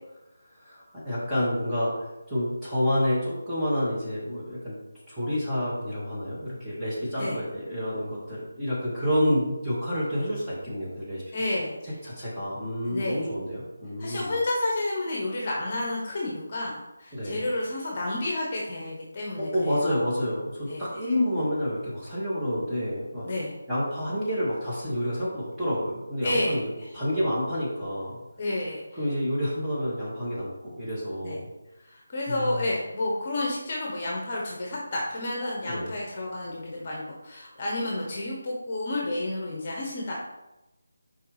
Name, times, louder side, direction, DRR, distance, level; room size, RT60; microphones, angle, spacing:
voice 1, 0.5-4.8 5.0-11.2 11.8-14.4 17.1-17.4 19.4-23.3 23.7-28.2 28.9-31.5 32.3-32.6 35.7-35.9, equal, 5° right, -13 dB, 2.2 m, -29 dB
voice 2, 11.3-11.8 12.9-13.2 14.0-20.0 20.7-20.8 23.2-23.5 26.2-26.9 28.4-28.8 31.2-31.4 31.9-40.1, left 2 dB, 35° left, -2 dB, 1.4 m, -30 dB
6.7 x 4.7 x 3.5 m, 0.99 s
figure-of-eight pair, 165°, 0 cm